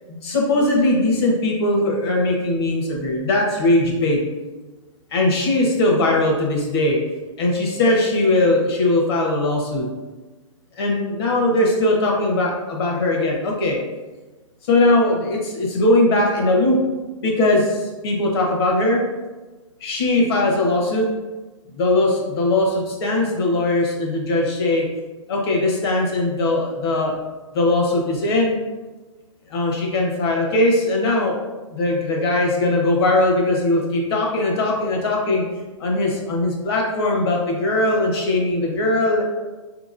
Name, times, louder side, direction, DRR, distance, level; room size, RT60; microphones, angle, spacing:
voice 1, 0.1-4.2 5.1-7.0 7.4-9.8 10.8-13.8 14.7-16.8 17.2-19.0 19.8-21.1 21.7-24.9 25.3-27.1 27.5-28.6 29.5-31.4 31.7-35.4 35.8-39.2, left 2 dB, 50° left, -1 dB, 1.0 m, -20 dB
4.4 x 2.9 x 2.5 m, 1.2 s
hypercardioid pair, 150°, 16 cm